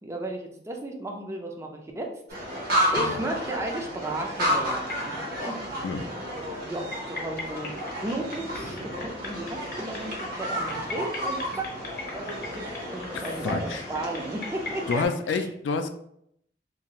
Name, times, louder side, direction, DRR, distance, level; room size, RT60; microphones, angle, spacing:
voice 1, 0.0-2.1 2.4-2.6 2.9-5.2 5.5-5.6 6.6-7.7 8.0-11.7 12.1-15.0 15.3-15.5, right 2 dB, 15° right, 2 dB, 0.4 m, -34 dB
sound 1, 2.3-15.0, equal, 55° right, 0.8 m, -32 dB
sound 2, 4.8-15.1, left 2 dB, 55° left, 0.8 m, -41 dB
voice 2, 13.1-13.9 14.9-15.9, left 4 dB, 90° left, 8 dB, 0.3 m, -29 dB
2.6 x 2.4 x 2.9 m, 0.72 s
head